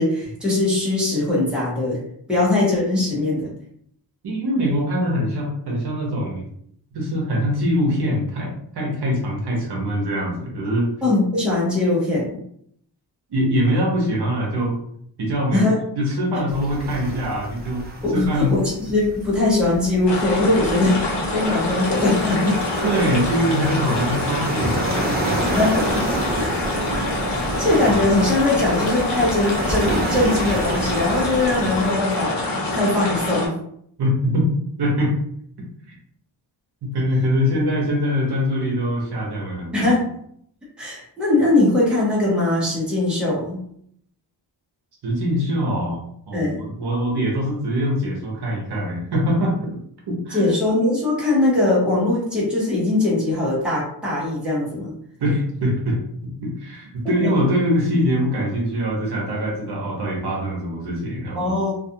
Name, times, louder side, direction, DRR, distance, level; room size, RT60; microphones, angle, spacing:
voice 1, 0.0-2.0 2.3-3.5 11.0-12.4 15.5-15.8 18.0-22.6 25.4-26.1 26.4-26.8 27.3-33.6 39.7-40.0 40.8-43.6 46.3-46.7 50.3-54.9 57.2-57.3 61.4-61.7, left 2 dB, ahead, -7 dB, 0.8 m, -21 dB
voice 2, 4.2-6.5 6.9-10.9 13.3-14.8 15.2-15.7 15.9-17.8 18.1-18.5 22.8-25.5 34.0-34.5 34.8-35.2 36.8-39.9 45.0-49.7 50.1-50.5 55.2-56.0 56.4-61.6, equal, 60° right, -2 dB, 0.9 m, -23 dB
sound 1, 16.5-31.9, right 2 dB, 25° right, 0.4 m, -29 dB
sound 2, 20.1-33.5, left 2 dB, 65° left, 0.9 m, -26 dB
2.5 x 2.4 x 2.7 m, 0.68 s
wide cardioid pair, 165°, 45 cm